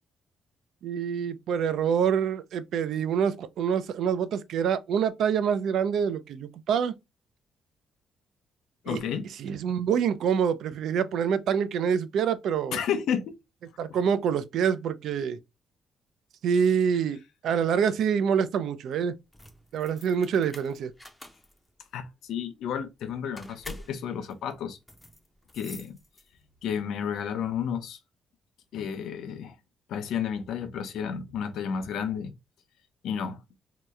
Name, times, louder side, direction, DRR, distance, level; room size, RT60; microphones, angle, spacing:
voice 1, 0.8-6.9 8.9-9.0 9.4-12.8 13.8-15.4 16.4-19.1 19.7-20.9, right 7 dB, 75° right, 0.4 m, -26 dB
voice 2, 8.8-9.6 12.7-13.3 13.9-14.0 21.9-24.8 25.5-26.0 26.6-28.0 28.7-29.6 29.9-32.4 33.0-33.4, left 7 dB, 80° left, 0.5 m, -32 dB
sound 1, 19.2-26.6, left 1 dB, 10° left, 0.5 m, -48 dB
2.8 x 2.1 x 3.5 m
cardioid pair, 125°, 0 cm